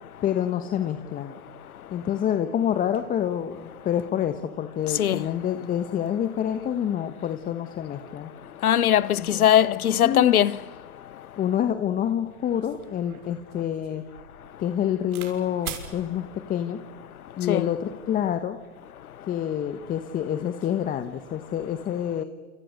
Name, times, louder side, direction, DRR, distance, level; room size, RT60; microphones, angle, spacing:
voice 1, 0.2-1.3 1.9-8.3 9.2-9.5 10.0-10.5 11.4-14.0 14.6-16.8 17.4-18.6 19.3-22.2, left 10 dB, 20° left, 1.3 m, -27 dB
voice 2, 8.6-10.5 17.5-17.6, left 11 dB, 85° left, 1.2 m, -20 dB
sound 1, 12.0-12.1 12.5-15.3 15.6-15.9 16.7-17.1, right 8 dB, 75° right, 6.3 m, -41 dB
28.5 x 28.0 x 6.6 m
hypercardioid pair, 140°, 43 cm